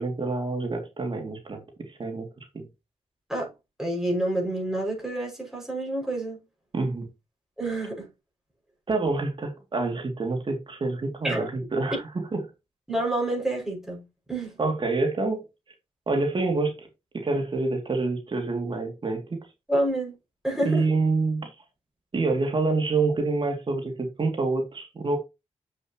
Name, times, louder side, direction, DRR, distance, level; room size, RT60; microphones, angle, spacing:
voice 1, 0.0-2.7 6.7-7.1 8.9-12.0 12.3-12.4 14.6-15.4 16.1-16.9 17.1-19.5 20.6-21.5 22.1-25.2, right 3 dB, 45° right, 2.8 m, -27 dB
voice 2, 3.8-6.4 7.6-8.1 11.2-11.5 12.9-14.5 19.7-20.2 20.4-20.8, right 1 dB, 5° right, 6.4 m, -28 dB
8.1 x 7.9 x 3.1 m
cardioid pair, 80°, 12 cm